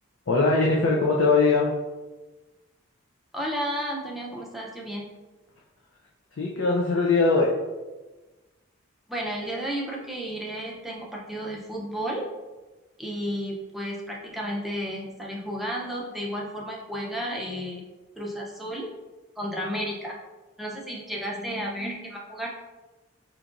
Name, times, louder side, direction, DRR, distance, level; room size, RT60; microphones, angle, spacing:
voice 1, 0.3-1.7 6.4-7.5, left 3 dB, 70° left, -2 dB, 0.5 m, -21 dB
voice 2, 3.3-5.1 9.1-12.2 13.0-17.8 18.2-18.9 19.4-20.2 20.6-22.5, equal, ahead, -3 dB, 0.5 m, -32 dB
4.8 x 2.9 x 2.5 m, 1.2 s
head